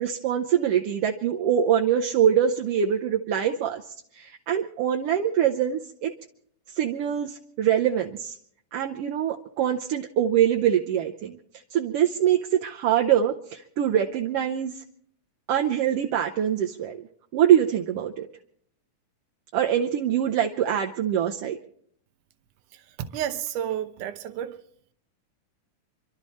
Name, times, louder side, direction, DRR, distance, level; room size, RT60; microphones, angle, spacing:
voice 1, 0.0-3.9 4.1-6.1 6.7-8.4 8.7-11.4 11.7-14.8 15.5-17.1 17.3-18.3 19.5-21.6, right 9 dB, 70° right, 1.5 m, -24 dB
voice 2, 22.7-24.6, right 10 dB, 90° right, 2.5 m, -31 dB
28.5 x 12.0 x 4.2 m
omnidirectional pair, 3.5 m